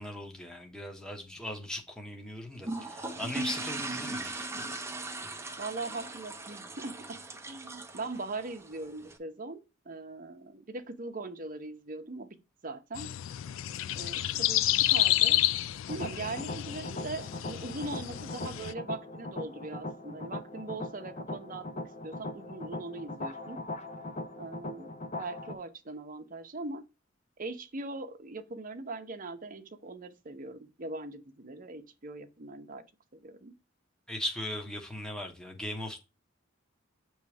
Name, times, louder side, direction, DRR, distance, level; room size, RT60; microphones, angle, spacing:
voice 1, 0.0-4.4 34.1-36.0, left 1 dB, 5° left, 1.1 m, -38 dB
sound 1, 2.6-9.2, right 2 dB, 15° right, 0.7 m, -39 dB
voice 2, 5.6-7.2 7.5-12.4 12.6-13.2 13.9-15.4 15.9-23.6 24.4-26.8 27.4-32.8 33.1-33.5, right 3 dB, 45° right, 0.8 m, -41 dB
sound 2, 13.0-18.7, left 14 dB, 75° left, 0.3 m, -29 dB
sound 3, 15.9-25.5, left 2 dB, 35° left, 0.8 m, -40 dB
8.0 x 3.1 x 4.9 m
head